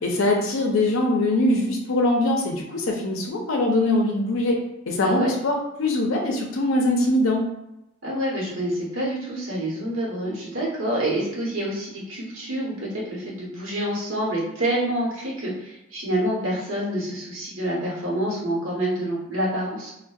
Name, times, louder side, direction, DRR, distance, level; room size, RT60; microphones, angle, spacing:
voice 1, 0.0-4.6 4.9-7.4, left 1 dB, 75° left, 1 dB, 0.5 m, -22 dB
voice 2, 5.0-5.3 8.0-19.9, right 1 dB, 80° right, -5 dB, 1.0 m, -27 dB
2.5 x 2.1 x 2.3 m, 0.86 s
head